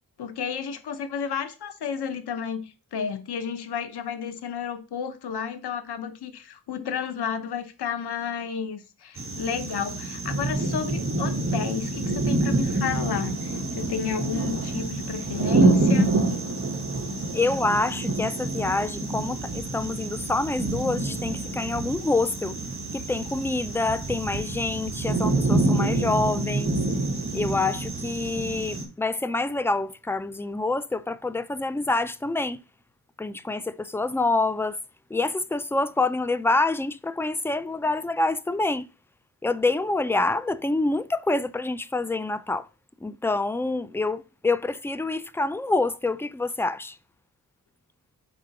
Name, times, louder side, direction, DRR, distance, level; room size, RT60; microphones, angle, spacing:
voice 1, 0.2-16.1, left 7 dB, 90° left, 0.9 m, -32 dB
sound 1, 9.2-28.8, right 2 dB, 35° right, 1.6 m, -27 dB
voice 2, 17.3-22.6 22.9-26.8 27.3-32.6 33.2-34.8 35.1-38.9 39.4-42.7 43.0-47.0, left 2 dB, 5° left, 0.3 m, -26 dB
5.1 x 3.8 x 5.8 m
cardioid pair, 75°, 38 cm